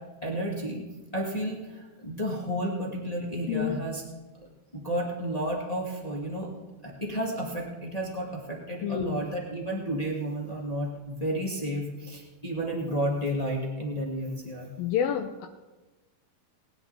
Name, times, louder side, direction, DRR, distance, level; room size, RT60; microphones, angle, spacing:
voice 1, 0.2-0.8 1.1-4.0 4.7-6.5 6.8-14.7, right 1 dB, 45° left, -3 dB, 0.5 m, -32 dB
voice 2, 3.5-3.8 8.8-9.2 14.8-15.5, left 9 dB, 80° left, 5 dB, 2.4 m, -28 dB
19.5 x 10.5 x 4.1 m, 1.1 s
omnidirectional pair, 4.3 m